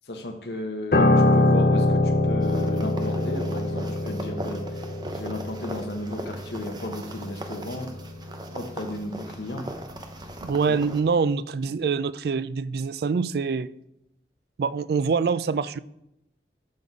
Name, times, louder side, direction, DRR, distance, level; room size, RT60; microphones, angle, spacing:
voice 1, 0.1-4.6 5.1-7.9 8.5-9.7 10.7-10.9, left 1 dB, 70° left, 4 dB, 1.3 m, -34 dB
Piano, 0.9-10.3 10.6-10.8, left 2 dB, 55° left, 0.8 m, -25 dB
sound 1, 2.4-11.0, right 1 dB, 25° right, 0.8 m, -39 dB
voice 2, 10.4-13.7 14.6-15.8, right 5 dB, 60° right, 16 dB, 0.3 m, -25 dB
12.0 x 4.1 x 4.8 m, 0.80 s
head